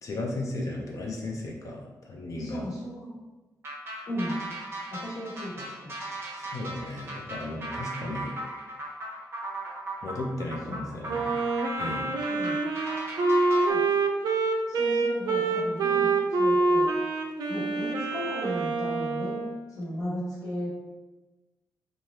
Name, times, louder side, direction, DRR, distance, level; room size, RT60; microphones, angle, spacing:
voice 1, 0.0-2.6 6.4-8.3 10.0-11.4 11.8-12.1, left 2 dB, 55° left, 0 dB, 0.5 m, -35 dB
voice 2, 2.4-3.1 4.1-4.4 4.9-5.9 10.7-10.9 12.3-12.6 13.5-13.8 14.7-16.1 16.4-16.9 17.5-19.4 19.8-20.7, equal, 75° left, -10 dB, 1.3 m, -35 dB
sound 1, 3.6-13.7, right 2 dB, 40° right, 0.7 m, -37 dB
Wind instrument woodwind instrument, 11.1-19.6, right 3 dB, 80° right, 0.3 m, -26 dB
3.2 x 2.3 x 2.7 m, 1.2 s
wide cardioid pair, 175°, 7 cm